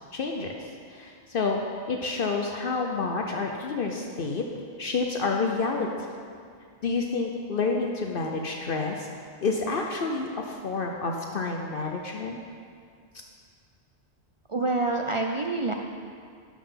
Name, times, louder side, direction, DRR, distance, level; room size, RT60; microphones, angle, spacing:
voice 1, 0.1-0.5 0.9-1.6 1.9-4.5 4.8-5.9 6.8-9.1 9.4-12.4, left 4 dB, 60° left, 2 dB, 0.8 m, -29 dB
voice 2, 14.5-15.7, right 3 dB, 45° right, 2 dB, 0.4 m, -26 dB
11.0 x 5.7 x 5.7 m, 2.2 s
omnidirectional pair, 1.1 m